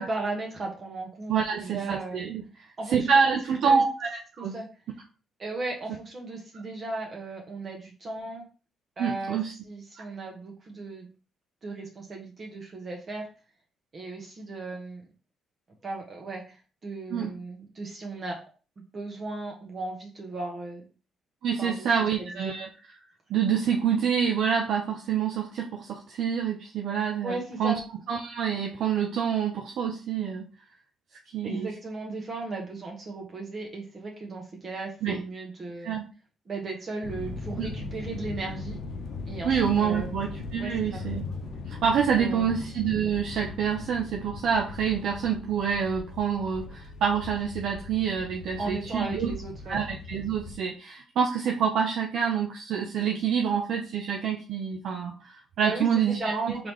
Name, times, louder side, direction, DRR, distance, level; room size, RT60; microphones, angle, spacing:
voice 1, 0.0-2.2 2.8-3.8 4.4-4.7 5.4-8.4 9.0-9.4 9.6-11.1 11.6-13.3 13.9-15.0 15.8-18.4 18.9-20.8 21.6-22.5 27.2-27.8 31.4-35.9 36.5-38.8 39.2-40.2 40.6-41.0 42.2-42.5 48.6-49.8 55.6-56.7, right 3 dB, 45° right, 0 dB, 1.1 m, -36 dB
voice 2, 1.3-2.4 2.9-4.6 9.0-9.5 10.0-10.1 17.1-17.3 21.4-22.7 23.3-27.8 28.1-30.4 31.3-31.7 35.0-35.2 35.8-36.0 37.6-37.7 39.4-41.2 41.7-49.3 49.7-56.5, right 7 dB, 75° right, 1 dB, 0.6 m, -27 dB
sound 1, 37.0-50.6, left 3 dB, 75° left, 0.7 m, -39 dB
3.8 x 3.4 x 3.0 m, 0.35 s
cardioid pair, 90°, 0 cm